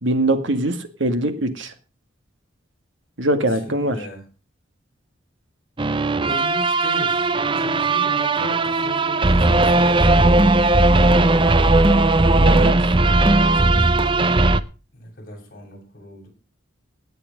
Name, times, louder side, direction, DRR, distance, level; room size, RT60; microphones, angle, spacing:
voice 1, 0.0-1.7 3.2-4.0 12.4-12.8, right 1 dB, 75° right, 9 dB, 2.0 m, -22 dB
voice 2, 3.5-4.2 6.1-11.3 12.4-14.3 14.9-16.3, left 1 dB, 45° left, -1 dB, 7.8 m, -38 dB
sound 1, 5.8-14.6, right 2 dB, 25° right, 0.6 m, -17 dB
17.0 x 9.2 x 5.3 m, 0.34 s
head